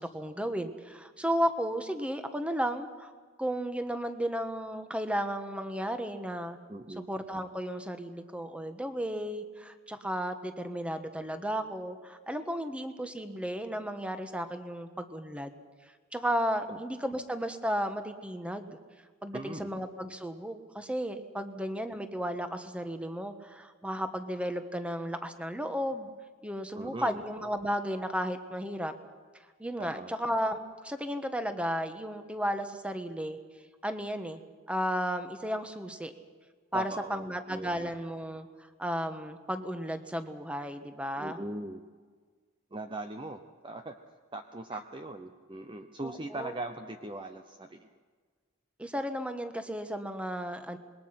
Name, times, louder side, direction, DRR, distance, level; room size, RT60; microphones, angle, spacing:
voice 1, 0.0-3.1 3.4-6.6 7.1-15.5 16.1-18.7 19.2-26.1 26.4-28.9 29.6-33.4 33.8-34.4 34.7-36.1 36.7-41.4 46.0-46.5 48.8-50.8, equal, 5° right, 8 dB, 1.3 m, -34 dB
voice 2, 6.7-7.1 16.7-16.8 19.3-19.7 26.7-27.2 29.8-30.1 36.7-37.9 41.2-41.8 42.7-44.0 44.3-47.9, right 2 dB, 25° right, 7 dB, 0.8 m, -40 dB
26.5 x 21.5 x 5.9 m, 1.5 s
head